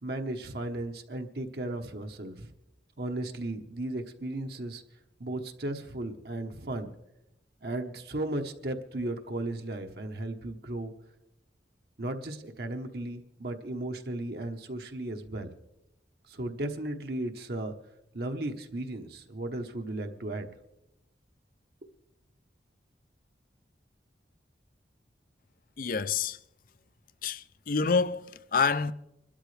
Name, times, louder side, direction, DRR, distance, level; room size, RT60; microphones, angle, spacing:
voice 1, 0.0-2.5 3.0-4.8 5.2-6.9 7.6-10.9 12.0-15.5 16.3-17.7 18.1-20.5, right 1 dB, 60° right, 1.0 m, -35 dB
voice 2, 25.8-26.4 27.2-28.9, left 5 dB, 50° left, 0.5 m, -28 dB
25.5 x 12.5 x 3.3 m
head